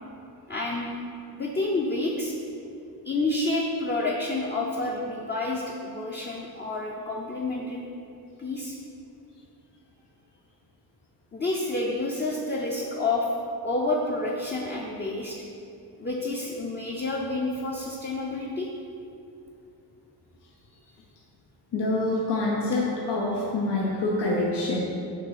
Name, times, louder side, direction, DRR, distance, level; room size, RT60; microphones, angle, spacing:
voice 1, 0.5-0.9 1.3-2.3 3.0-7.8 8.4-8.8 11.3-13.3 13.6-15.4 16.0-18.7, left 2 dB, 25° left, -2 dB, 0.5 m, -29 dB
voice 2, 21.7-24.8, left 2 dB, 80° left, -3 dB, 0.9 m, -26 dB
6.6 x 3.2 x 5.6 m, 2.7 s
wide cardioid pair, 110°, 41 cm